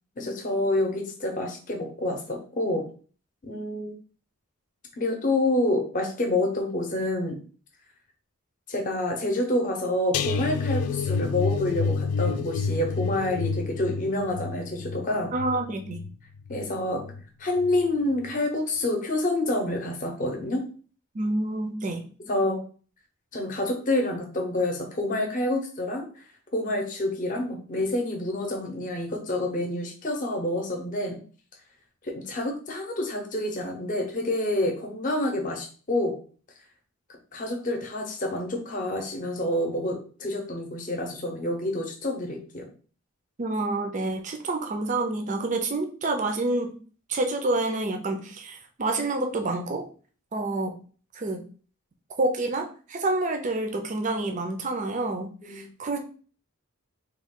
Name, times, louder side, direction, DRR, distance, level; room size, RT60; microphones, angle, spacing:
voice 1, 0.2-2.9 3.4-3.9 5.0-7.4 8.7-15.3 16.5-17.1 17.4-20.7 22.2-22.6 23.3-26.1 26.5-31.2 32.0-36.2 37.3-42.7 55.4-55.7, left 1 dB, 35° left, 2 dB, 0.7 m, -28 dB
sound 1, 10.1-17.2 17.6-17.9 18.2-18.3, left 5 dB, 75° left, 0.3 m, -29 dB
voice 2, 15.3-16.1 21.1-22.0 43.4-46.7 47.1-49.9 50.3-50.8 51.1-51.4 52.2-56.0, right 2 dB, 35° right, 5 dB, 0.4 m, -28 dB
3.5 x 2.3 x 3.6 m, 0.40 s
head